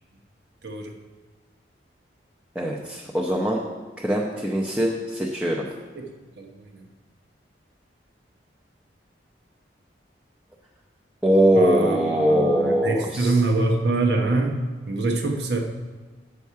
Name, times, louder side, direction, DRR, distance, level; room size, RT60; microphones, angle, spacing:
voice 1, 0.6-0.9 5.9-6.1 6.4-6.9 11.5-15.6, right 2 dB, 70° right, 2 dB, 1.1 m, -25 dB
voice 2, 2.6-3.6 4.0-5.6 11.2-13.3, equal, 5° right, -3 dB, 0.7 m, -21 dB
8.4 x 7.0 x 4.7 m, 1.3 s
head